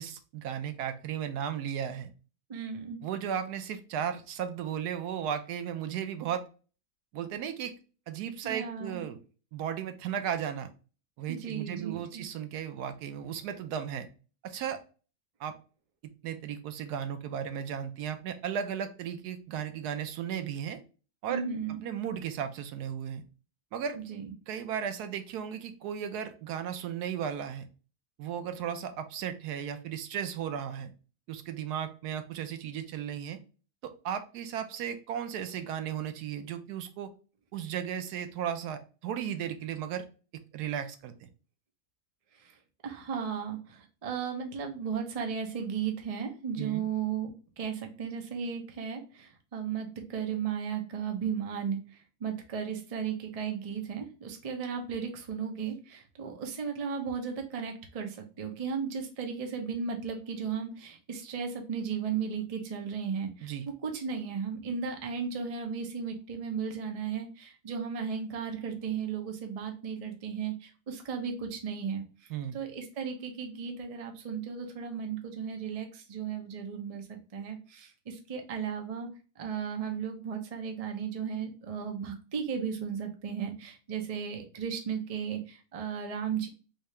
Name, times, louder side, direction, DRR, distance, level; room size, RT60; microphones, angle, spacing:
voice 1, 0.0-2.1 3.0-6.4 7.1-7.7 8.1-9.2 9.5-10.7 11.2-14.1 14.4-14.8 15.4-15.5 16.2-20.8 21.2-21.4 21.8-23.2 23.7-24.0 24.5-27.6 28.2-30.9 31.3-33.4 33.8-37.1 37.5-40.0 40.5-41.3 46.6-46.8 63.4-63.7 72.3-72.6, right 8 dB, 80° right, 8 dB, 1.1 m, -35 dB
voice 2, 2.5-3.0 8.4-9.0 11.3-12.2 21.3-21.8 23.9-24.3 42.3-42.6 42.8-63.5 63.8-79.1 79.4-86.5, right 7 dB, 50° right, 3 dB, 0.4 m, -35 dB
3.5 x 2.7 x 3.1 m, 0.36 s
omnidirectional pair, 1.7 m